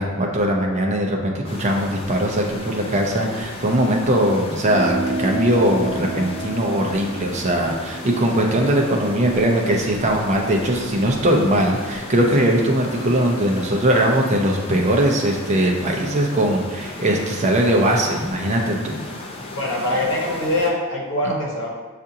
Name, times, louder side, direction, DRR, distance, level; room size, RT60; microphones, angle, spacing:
voice 1, 0.0-19.0, right 1 dB, 35° right, 1 dB, 0.5 m, -20 dB
sound 1, 1.4-20.7, left 2 dB, 25° left, 0.5 m, -35 dB
sound 2, 4.6-9.4, right 3 dB, 70° right, 0.7 m, -31 dB
voice 2, 19.5-21.7, left 1 dB, 60° left, -3 dB, 1.0 m, -23 dB
6.2 x 2.5 x 2.8 m, 1.3 s
head